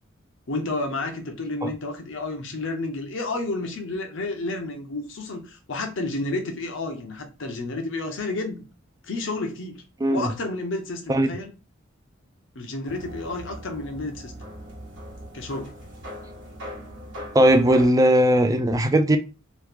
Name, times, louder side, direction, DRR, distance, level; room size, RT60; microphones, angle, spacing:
voice 1, 0.5-8.7 9.0-9.8 10.1-11.5 12.5-14.3 15.3-15.7, left 2 dB, 60° left, 0.7 m, -31 dB
voice 2, 10.0-10.3 11.1-11.3 17.3-19.2, right 1 dB, 15° right, 0.3 m, -18 dB
sound 1, 12.9-17.9, equal, 60° right, 1.3 m, -40 dB
3.0 x 2.4 x 3.4 m
head